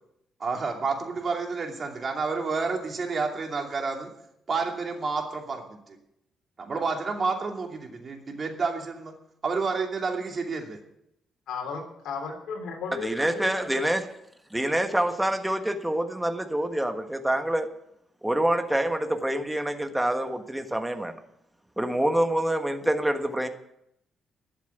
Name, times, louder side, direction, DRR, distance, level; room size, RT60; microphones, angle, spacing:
voice 1, 0.4-4.1 4.5-6.0 6.6-9.1 9.4-10.8, right 4 dB, 40° right, 2 dB, 2.6 m, -30 dB
voice 2, 11.5-13.7, left 5 dB, 75° left, 0 dB, 3.4 m, -35 dB
voice 3, 13.0-14.1 14.5-17.7 18.2-21.2 21.8-23.5, right 1 dB, 5° right, 6 dB, 1.4 m, -26 dB
12.0 x 7.3 x 9.3 m, 0.79 s
cardioid pair, 90°, 0 cm